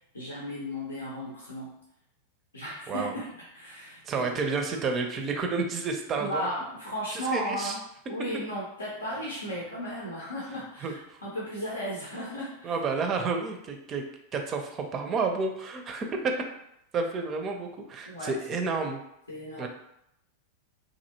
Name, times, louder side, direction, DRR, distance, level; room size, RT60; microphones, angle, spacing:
voice 1, 0.1-1.7 2.5-4.5 6.1-7.8 8.1-12.7 18.1-18.7 19.3-19.7, equal, 75° left, -4 dB, 0.6 m, -35 dB
voice 2, 4.1-6.5 7.1-7.8 10.8-11.2 12.6-14.0 14.3-16.3 16.9-19.0 19.6-19.7, right 4 dB, 30° right, 4 dB, 0.5 m, -30 dB
3.2 x 2.6 x 2.7 m, 0.78 s
figure-of-eight pair, 90°, 0 cm